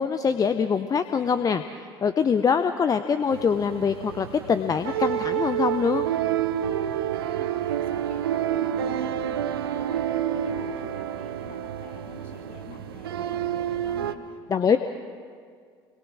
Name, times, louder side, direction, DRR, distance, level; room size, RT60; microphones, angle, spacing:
voice 1, 0.0-1.6 2.0-6.1 14.5-14.8, left 6 dB, 30° left, 9 dB, 0.9 m, -23 dB
sound 1, 3.3-14.1, right 10 dB, 70° right, 0.9 m, -29 dB
voice 2, 7.1-14.8, left 5 dB, 50° left, -1 dB, 6.6 m, -47 dB
28.0 x 22.0 x 6.3 m, 2.1 s
figure-of-eight pair, 60°, 13 cm